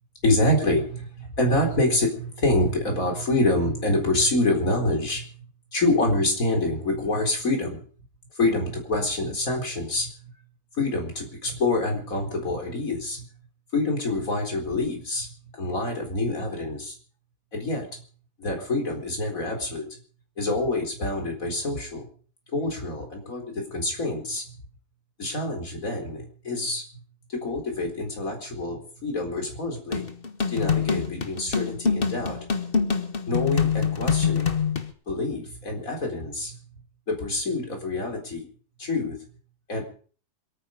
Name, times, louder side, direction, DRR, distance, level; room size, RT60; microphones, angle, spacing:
voice 1, 0.2-7.8 8.4-10.3 10.8-13.3 13.7-16.9 17.5-18.0 18.4-20.0 20.4-22.1 22.5-24.6 25.2-27.0 27.4-30.1 30.5-32.4 33.3-34.6 35.1-36.6 37.1-38.5 38.8-39.2 39.7-39.8, left 2 dB, 55° left, 3 dB, 4.5 m, -26 dB
sound 1, 29.9-34.9, left 6 dB, 35° left, 1.5 m, -25 dB
27.0 x 9.5 x 5.2 m, 0.43 s
omnidirectional pair, 1.7 m